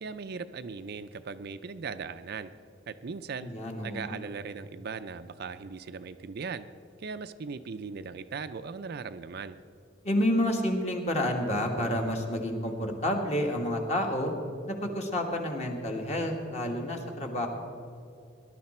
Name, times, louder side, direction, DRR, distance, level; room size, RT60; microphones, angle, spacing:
voice 1, 0.0-2.5 2.9-3.5 3.8-6.7 7.0-9.6, right 5 dB, 55° right, 11 dB, 0.4 m, -38 dB
voice 2, 3.4-4.2 10.0-14.3 14.7-17.5, left 1 dB, 35° left, 2 dB, 1.7 m, -29 dB
19.5 x 11.5 x 4.3 m, 2.5 s
head